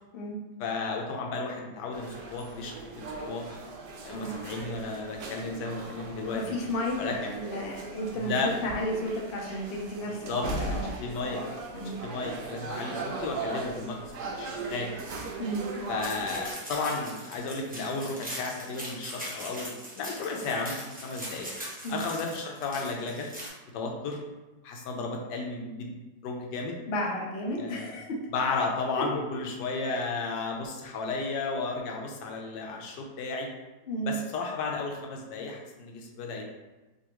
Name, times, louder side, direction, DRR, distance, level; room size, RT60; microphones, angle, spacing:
voice 1, 0.6-3.4 4.0-6.4 7.0-7.3 8.1-8.5 10.3-11.4 11.8-14.9 15.9-21.5 21.9-23.3 23.7-24.2 24.6-25.9 26.2-26.8 27.6-27.9 28.3-33.5 34.0-36.4, left 3 dB, 85° left, 1 dB, 1.3 m, -33 dB
sound 1, 1.9-16.5, right 3 dB, 80° right, 1.1 m, -38 dB
voice 2, 6.3-10.9 11.2-12.0 15.4-15.6 21.8-22.0 26.9-28.2 29.0-29.1 33.9-34.2, equal, 60° left, -2 dB, 0.6 m, -33 dB
sound 2, 16.0-23.5, equal, 10° right, 0.5 m, -40 dB
3.7 x 2.7 x 2.9 m, 1.1 s
omnidirectional pair, 1.8 m